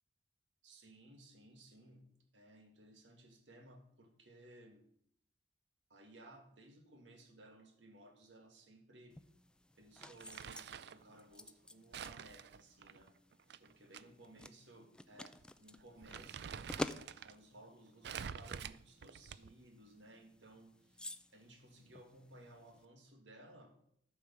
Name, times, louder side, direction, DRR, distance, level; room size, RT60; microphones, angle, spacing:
voice 1, 0.6-4.9 5.9-9.2 9.8-13.2 13.6-16.6 17.2-23.8, right 1 dB, 85° right, 1.9 m, -59 dB
sound 1, 9.1-22.9, left 1 dB, 5° left, 0.3 m, -51 dB
Crumpling crinkling, 10.0-11.0 11.9-14.0 14.4-14.5 15.3-15.4 15.8-17.3 18.0-19.6, right 7 dB, 65° right, 0.4 m, -48 dB
13.0 x 5.0 x 6.8 m
head